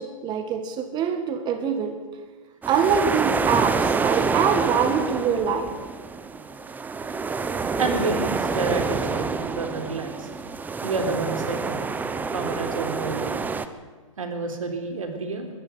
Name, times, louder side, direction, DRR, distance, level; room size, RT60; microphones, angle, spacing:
voice 1, 0.0-2.0 2.7-5.7, right 7 dB, 25° right, 7 dB, 1.7 m, -24 dB
sound 1, 2.6-13.7, right 4 dB, 10° right, 0.9 m, -27 dB
voice 2, 7.8-10.3 10.8-11.8 12.3-13.4 14.2-15.5, right 3 dB, 80° right, 5 dB, 3.7 m, -29 dB
22.5 x 14.0 x 8.1 m, 1.4 s
hypercardioid pair, 125°, 17 cm